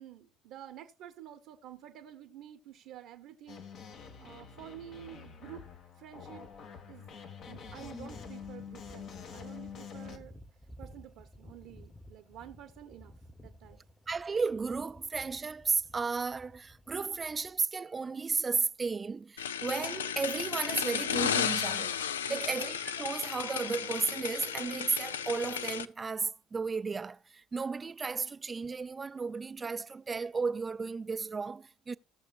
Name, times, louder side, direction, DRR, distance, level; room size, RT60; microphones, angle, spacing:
voice 1, 0.0-3.6 4.2-5.7 6.0-6.5 6.9-7.2 7.5-10.3 10.8-13.8 22.3-22.5, right 11 dB, 65° right, 1.0 m, -50 dB
sound 1, 3.5-10.2, left 6 dB, 60° left, 1.6 m, -47 dB
sound 2, 7.4-17.6, equal, 15° left, 1.1 m, -54 dB
voice 2, 14.1-22.0 22.3-32.0, right 4 dB, 30° right, 0.4 m, -34 dB
sound 3, 19.4-25.8, left 8 dB, 90° left, 0.4 m, -34 dB
17.5 x 6.5 x 2.4 m
hypercardioid pair, 60°, 0 cm